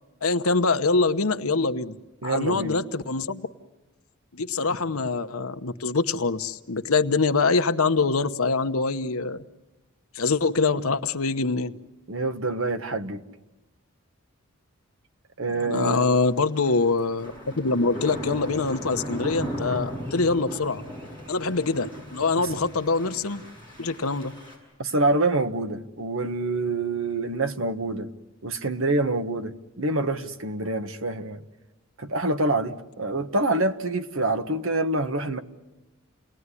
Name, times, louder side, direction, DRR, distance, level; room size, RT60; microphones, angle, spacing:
voice 1, 0.2-1.9 2.2-3.4 4.3-9.4 10.1-11.7 15.5-20.8 21.3-23.4 23.8-24.3, left 3 dB, 85° left, 1.1 m, -24 dB
voice 2, 2.2-2.8 12.1-13.2 15.4-16.0 22.4-22.5 24.8-28.1 28.4-31.4 32.0-35.4, right 2 dB, 70° right, 1.3 m, -26 dB
sound 1, 16.5-24.5, equal, 25° right, 7.6 m, -37 dB
29.0 x 19.5 x 9.9 m
head